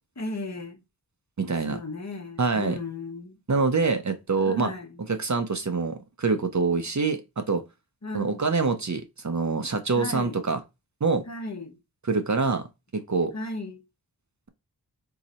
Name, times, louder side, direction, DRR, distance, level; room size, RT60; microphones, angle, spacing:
voice 1, 0.2-0.8 1.5-3.3 4.4-5.0 8.0-8.5 9.9-10.4 11.3-11.8 13.3-13.8, left 2 dB, 45° left, 1.1 m, -35 dB
voice 2, 1.4-1.8 2.4-2.8 3.5-4.7 5.1-7.6 8.1-10.6 11.0-11.2 12.1-12.6 12.9-13.3, right 4 dB, 45° right, 0.6 m, -25 dB
3.9 x 2.8 x 4.2 m
wide cardioid pair, 65°, 39 cm